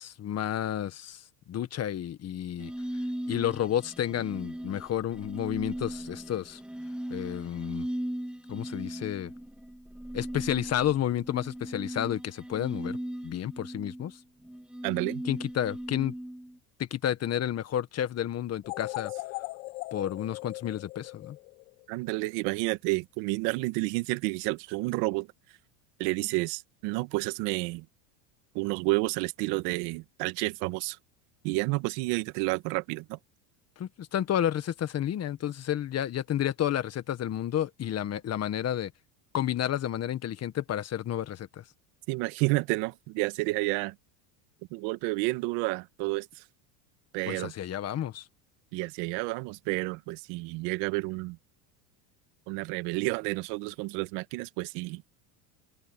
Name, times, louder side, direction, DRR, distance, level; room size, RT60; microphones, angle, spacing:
voice 1, 0.0-2.7 3.3-6.6 7.1-7.9 8.5-9.3 10.1-13.0 13.2-14.2 15.2-16.1 16.8-19.1 19.9-21.4 33.8-38.9 39.3-41.6 47.3-48.2, left 11 dB, 35° left, 1.6 m, -31 dB
sound 1, 2.6-16.6, right 1 dB, ahead, 1.8 m, -38 dB
voice 2, 14.8-15.2 21.9-25.3 26.0-27.8 28.5-31.0 31.4-33.2 42.1-43.9 44.7-46.4 47.1-47.5 48.7-51.4 52.5-55.0, right 23 dB, 65° right, 1.6 m, -30 dB
sound 2, 18.6-21.8, left 27 dB, 75° left, 7.3 m, -39 dB
supercardioid pair, 135°, 46 cm